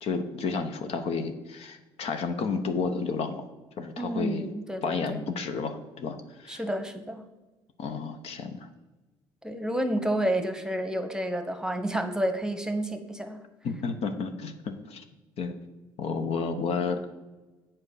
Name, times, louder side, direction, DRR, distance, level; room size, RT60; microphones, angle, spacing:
voice 1, 0.0-3.5 3.8-4.5 4.8-6.6 7.8-8.7 13.6-15.0 15.4-15.5 16.0-17.0, left 4 dB, 60° left, 7 dB, 0.8 m, -31 dB
voice 2, 4.0-5.2 6.5-7.2 9.4-13.4, right 1 dB, 5° right, 8 dB, 0.9 m, -30 dB
7.6 x 4.3 x 6.5 m, 1.2 s
supercardioid pair, 65°, 12 cm